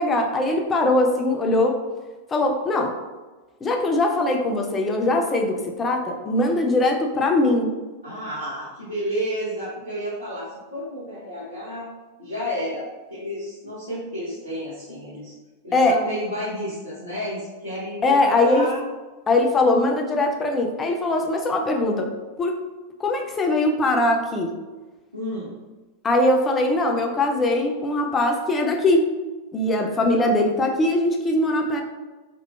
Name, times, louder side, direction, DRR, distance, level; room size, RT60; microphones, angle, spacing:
voice 1, 0.0-1.8 2.3-2.9 3.6-7.7 15.7-16.0 18.0-18.7 19.3-22.1 22.4-22.6 23.0-24.6 26.0-29.0 29.5-31.8, left 2 dB, 20° left, 2 dB, 0.4 m, -21 dB
voice 2, 8.0-11.9 12.2-12.8 13.1-15.3 15.6-18.8 25.1-25.5 29.7-30.2, equal, 75° right, -12 dB, 1.0 m, -31 dB
2.8 x 2.0 x 2.2 m, 1.2 s
figure-of-eight pair, 90°, 0 cm